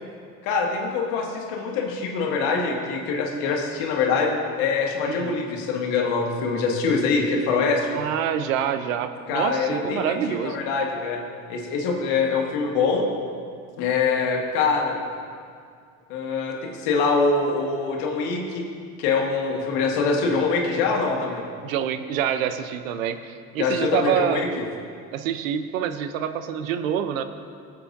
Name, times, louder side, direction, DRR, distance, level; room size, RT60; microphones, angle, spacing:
voice 1, 0.4-8.0 9.3-11.2 11.5-13.0 13.8-15.0 16.1-18.6 19.0-21.4 23.6-24.6, left 4 dB, 70° left, 1 dB, 1.6 m, -24 dB
voice 2, 7.9-10.6 21.6-24.5 25.1-27.2, right 9 dB, 85° right, 10 dB, 0.7 m, -26 dB
18.0 x 7.5 x 2.6 m, 2.2 s
hypercardioid pair, 65°, 39 cm